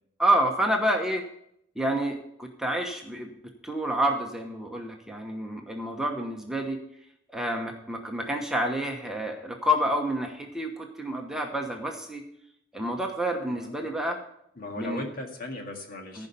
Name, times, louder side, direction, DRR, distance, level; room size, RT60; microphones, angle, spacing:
voice 1, 0.2-1.2 1.8-3.3 3.6-6.8 7.3-12.2 12.7-14.2 14.8-15.1 16.2-16.3, equal, 5° right, 2 dB, 1.1 m, -28 dB
voice 2, 13.4-13.9 14.6-16.3, left 1 dB, 50° left, 2 dB, 1.9 m, -38 dB
15.0 x 5.4 x 6.9 m, 0.75 s
head